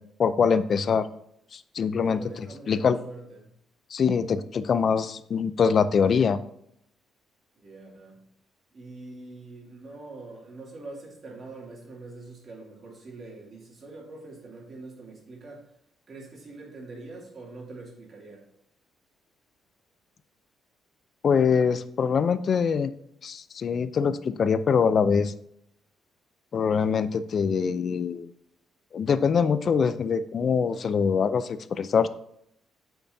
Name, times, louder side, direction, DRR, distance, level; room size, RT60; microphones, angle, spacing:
voice 1, 0.2-1.1 1.5-2.2 2.7-3.0 3.9-6.4 21.2-22.9 23.2-25.3 26.5-28.3 28.9-32.1, left 6 dB, 50° left, 14 dB, 0.4 m, -23 dB
voice 2, 2.0-3.5 7.6-8.2 8.7-15.8 16.1-18.4, right 3 dB, 45° right, -2 dB, 2.6 m, -44 dB
8.4 x 5.8 x 2.7 m, 0.72 s
cardioid pair, 90°, 0 cm